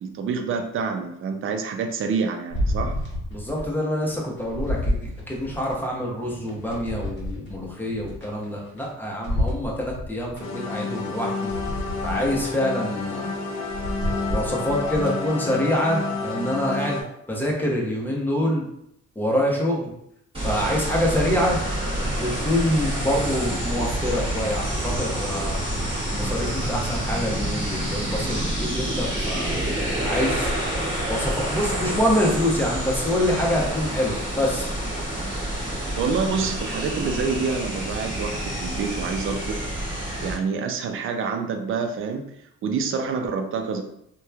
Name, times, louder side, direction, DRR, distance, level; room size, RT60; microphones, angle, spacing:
voice 1, 0.0-2.9 36.0-39.7 40.2-42.3 42.6-43.8, right 5 dB, 45° right, 5 dB, 0.4 m, -27 dB
sound 1, 2.5-3.7 4.1-5.8 6.3-8.9 9.2-10.4 11.0-11.1 11.5-12.6 13.0-13.2 13.6-15.3 15.7-15.8, left 1 dB, 40° left, 1.0 m, -29 dB
voice 2, 3.3-11.5 12.0-13.3 14.3-18.7 19.2-19.9 20.4-21.6 22.2-25.6 26.1-29.6 30.0-30.5 31.1-34.7, equal, 5° left, -2 dB, 0.7 m, -26 dB
sound 2, 10.4-17.0, left 4 dB, 65° left, 0.6 m, -30 dB
sound 3, 20.3-40.3, right 1 dB, 20° right, 1.3 m, -28 dB
2.9 x 2.2 x 2.3 m, 0.75 s
cardioid pair, 90°, 30 cm